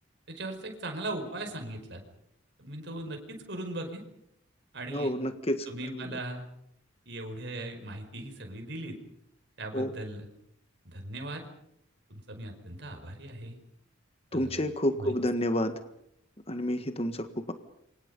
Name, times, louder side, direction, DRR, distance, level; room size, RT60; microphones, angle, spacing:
voice 1, 0.3-2.0 2.6-4.0 4.7-5.1 5.7-6.4 7.0-9.0 9.6-10.3 10.8-11.4 12.1-13.6 14.3-14.6 15.0-15.1, right 1 dB, 60° right, 4 dB, 5.1 m, -38 dB
voice 2, 4.9-5.7 5.9-6.2 9.7-9.9 14.3-15.7 16.5-17.5, left 1 dB, 30° left, 9 dB, 1.6 m, -29 dB
28.5 x 24.5 x 5.5 m, 0.75 s
head